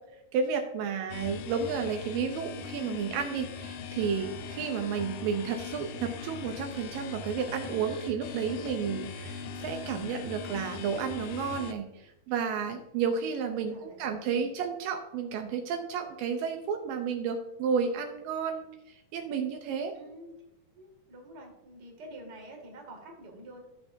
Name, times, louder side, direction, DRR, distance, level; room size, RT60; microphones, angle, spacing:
voice 1, 0.3-19.9, right 6 dB, 80° right, 5 dB, 2.3 m, -32 dB
sound 1, 1.1-11.7, left 6 dB, 80° left, 1.7 m, -40 dB
voice 2, 13.3-14.3 19.9-20.3 20.7-23.6, right 1 dB, 35° right, 1 dB, 2.3 m, -48 dB
15.5 x 5.9 x 2.6 m, 0.92 s
omnidirectional pair, 4.1 m